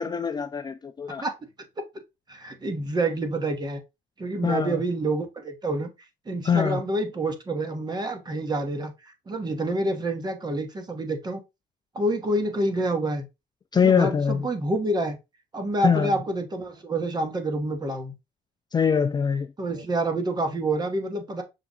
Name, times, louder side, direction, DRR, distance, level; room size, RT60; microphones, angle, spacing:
voice 1, 0.0-1.2 4.4-4.7 6.5-6.8 13.7-14.4 15.8-16.1 18.7-19.5, left 6 dB, 25° left, 0.4 m, -23 dB
voice 2, 2.3-3.8 4.2-5.9 6.3-11.4 11.9-13.3 13.7-15.2 15.5-18.1 19.6-21.4, right 2 dB, 25° right, 1.1 m, -28 dB
5.8 x 2.4 x 3.7 m
cardioid pair, 110°, 17 cm